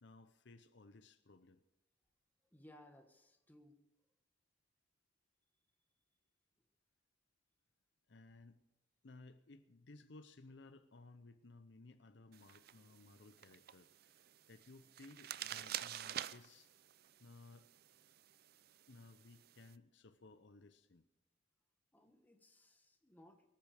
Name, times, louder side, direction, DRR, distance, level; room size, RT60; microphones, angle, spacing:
voice 1, 0.0-1.6 8.1-8.6 9.0-16.7 17.2-17.7 18.9-21.1, left 3 dB, 65° left, 10 dB, 0.7 m, -59 dB
voice 2, 2.5-3.8 21.9-23.4, left 1 dB, 10° left, 4 dB, 1.4 m, -62 dB
sound 1, 12.3-19.7, right 11 dB, 55° right, 0.4 m, -49 dB
23.5 x 8.6 x 4.9 m, 0.95 s
head